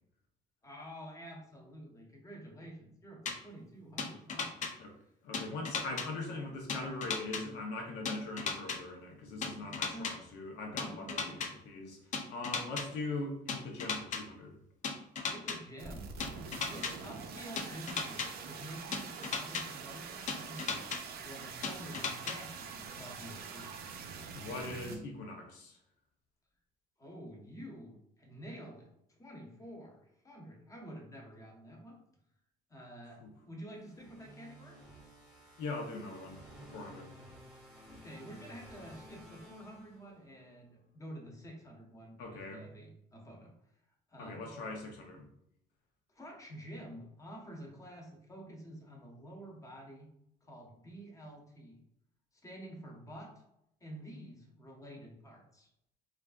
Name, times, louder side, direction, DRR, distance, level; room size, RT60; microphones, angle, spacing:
voice 1, 0.6-4.7 9.6-10.1 10.8-11.4 12.0-12.2 15.3-16.1 16.6-20.9 21.2-23.8 27.0-32.0 32.7-34.8 37.9-43.5 44.1-44.6 46.1-50.1 50.4-51.8 52.4-53.3 53.8-55.7, right 1 dB, 20° left, -1 dB, 0.9 m, -49 dB
sound 1, 3.3-3.4 4.0-4.7 5.3-6.1 6.7-7.4 8.1-8.8 9.4-10.1 10.8-11.5 12.1-12.8 13.5-14.2 14.8-15.6 16.2-16.9 17.6-18.3 18.9-19.6 20.3-21.0 21.6-22.4, left 5 dB, 45° left, 0.5 m, -35 dB
voice 2, 5.2-11.4 11.7-12.0 12.3-14.6 24.3-25.8 33.2-33.3 35.6-36.4 36.7-37.1 42.2-42.7 44.2-45.3, left 2 dB, 85° left, 2 dB, 0.7 m, -41 dB
sound 2, 15.8-25.0, right 5 dB, 65° right, 0.5 m, -45 dB
sound 3, 33.8-40.5, equal, ahead, 1.0 m, -54 dB
3.3 x 2.5 x 2.4 m, 0.78 s
cardioid pair, 110°, 17 cm